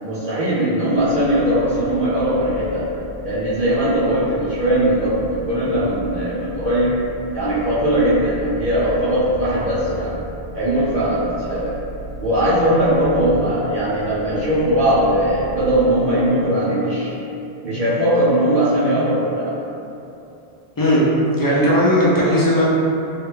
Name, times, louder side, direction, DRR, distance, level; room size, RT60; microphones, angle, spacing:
voice 1, 0.0-2.9 3.2-7.0 7.3-10.2 10.5-11.8 12.2-17.1 17.6-19.6 21.4-21.8 22.2-22.3, right 1 dB, 55° right, -11 dB, 0.7 m, -19 dB
sound 1, 0.9-15.8, right 1 dB, 75° right, 1.0 m, -36 dB
voice 2, 21.4-22.7, left 1 dB, 30° left, -7 dB, 0.4 m, -17 dB
3.2 x 2.4 x 3.2 m, 2.8 s
omnidirectional pair, 1.1 m